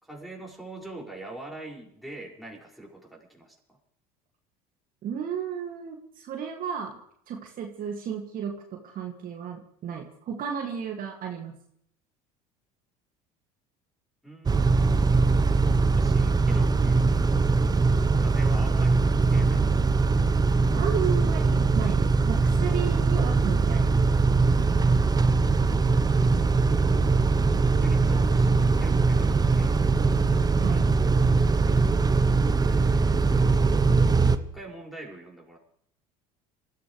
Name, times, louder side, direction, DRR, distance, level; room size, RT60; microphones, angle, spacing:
voice 1, 0.0-3.8 14.2-15.3 15.9-17.5 18.1-19.6 26.7-29.8 32.7-33.2 34.4-35.6, right 2 dB, ahead, -3 dB, 6.0 m, -44 dB
voice 2, 5.0-7.0 7.3-11.6 20.7-24.1 30.6-30.9, right 7 dB, 50° right, 1 dB, 2.3 m, -34 dB
Car / Idling / Accelerating revving vroom, 14.5-34.4, right 4 dB, 20° right, 0.9 m, -21 dB
27.0 x 14.5 x 3.3 m, 0.68 s
hypercardioid pair, 75°, 18 cm